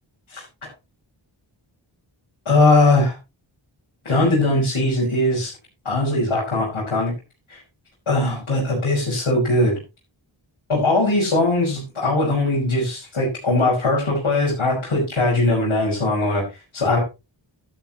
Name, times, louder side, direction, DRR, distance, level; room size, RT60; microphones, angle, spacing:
voice 1, 2.5-3.1 4.1-5.5 5.9-7.1 7.5-7.6 8.1-9.8 10.7-16.4 16.7-17.0, left 2 dB, 85° left, -6 dB, 5.3 m, -20 dB
13.0 x 9.6 x 3.0 m, 0.27 s
cardioid pair, 50°, 48 cm